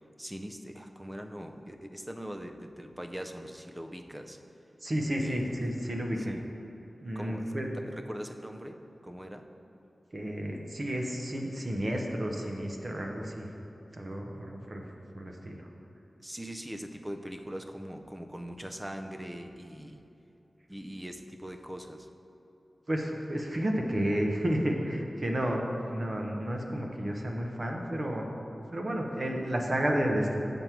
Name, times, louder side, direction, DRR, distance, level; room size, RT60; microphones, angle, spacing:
voice 1, 0.2-4.4 5.2-5.6 6.3-6.5 7.2-9.4 16.2-20.0 20.7-22.1, equal, 10° right, 5 dB, 0.4 m, -41 dB
voice 2, 4.8-6.3 7.0-7.7 10.1-13.5 13.9-14.9 15.1-15.7 22.9-28.3 28.7-30.4, equal, 40° right, 1 dB, 0.7 m, -31 dB
7.4 x 5.2 x 4.5 m, 2.9 s
wide cardioid pair, 95°, 0 cm